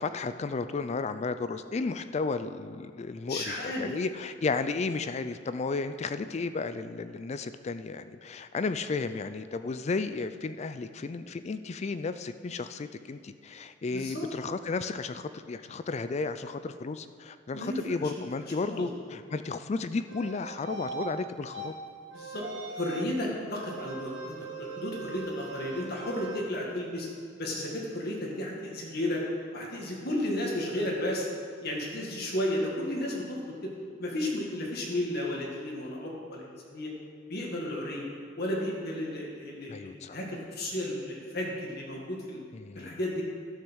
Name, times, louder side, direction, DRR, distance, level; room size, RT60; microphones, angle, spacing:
voice 1, 0.0-21.7 39.7-40.2 42.5-42.9, left 4 dB, 35° left, 11 dB, 0.4 m, -33 dB
voice 2, 3.2-3.9 13.9-14.3 17.5-17.8 18.2-18.3 18.7-18.9 22.1-27.1 27.4-29.2 29.5-31.3 31.6-33.7 34.0-36.9 37.3-38.1 38.4-42.4 42.8-43.2, left 1 dB, 55° left, -2 dB, 2.0 m, -33 dB
sound 1, 20.1-21.1 21.5-21.7 22.1-23.1 23.6-26.4, right 4 dB, 75° right, 1.3 m, -40 dB
12.0 x 6.6 x 6.3 m, 2.2 s
head